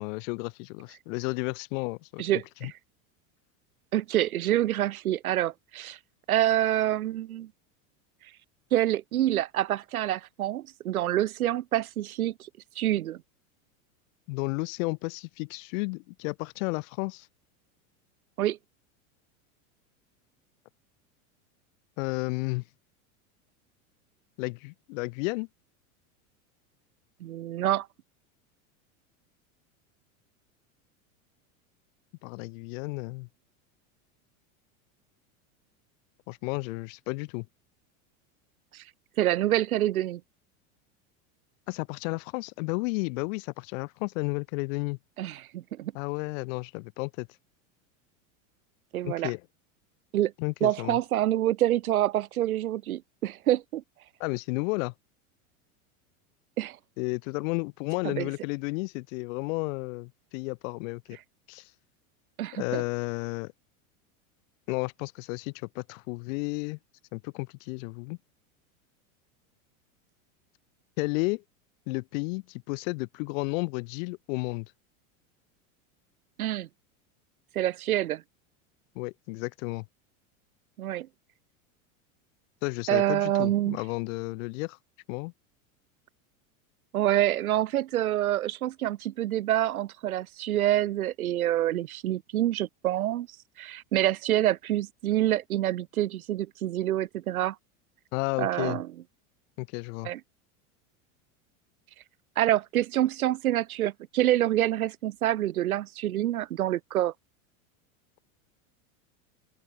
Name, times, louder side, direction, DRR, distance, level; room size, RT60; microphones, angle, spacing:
voice 1, 0.0-2.7 14.3-17.3 22.0-22.6 24.4-25.5 32.2-33.3 36.3-37.5 41.7-45.0 45.9-47.3 49.0-49.4 50.4-51.0 54.2-54.9 57.0-61.2 61.5-61.7 62.5-63.5 64.7-66.8 67.1-68.2 71.0-71.4 71.9-74.7 78.9-79.9 82.6-84.8 85.1-85.3 98.1-98.8 99.6-100.1, left 28 dB, 65° left, 8.0 m, -32 dB
voice 2, 2.2-2.7 3.9-6.0 6.3-7.5 8.7-12.5 12.8-13.2 18.4-18.6 27.2-27.9 38.7-38.8 39.2-40.2 45.2-45.9 48.9-49.3 50.1-50.3 50.6-53.8 56.6-56.8 58.0-58.3 62.4-62.8 76.4-76.7 77.5-78.2 80.8-81.1 82.9-83.8 86.9-93.3 93.6-97.6 98.4-98.9 100.0-100.2 102.4-107.1, right 13 dB, 85° right, 2.6 m, -27 dB
open air
supercardioid pair, 110°, 42 cm